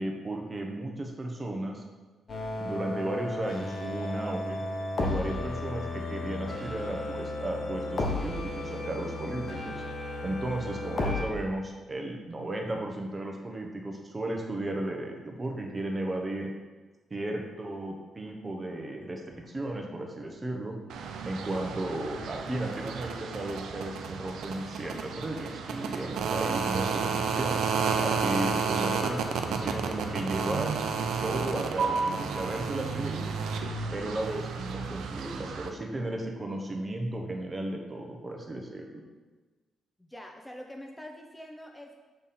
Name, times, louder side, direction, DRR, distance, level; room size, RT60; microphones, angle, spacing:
voice 1, 0.0-1.8 2.6-4.6 5.0-9.8 10.2-16.5 17.1-20.8 21.2-27.6 28.0-30.8 31.2-33.3 33.9-39.0, right 1 dB, 30° right, 2 dB, 1.0 m, -34 dB
sound 1, 2.3-11.3, left 2 dB, 45° left, 1.2 m, -34 dB
sound 2, 20.9-35.7, right 5 dB, 85° right, 0.5 m, -31 dB
voice 2, 40.0-42.0, equal, 10° left, 2 dB, 0.6 m, -45 dB
7.2 x 3.5 x 4.2 m, 1.3 s
cardioid pair, 75°, 0 cm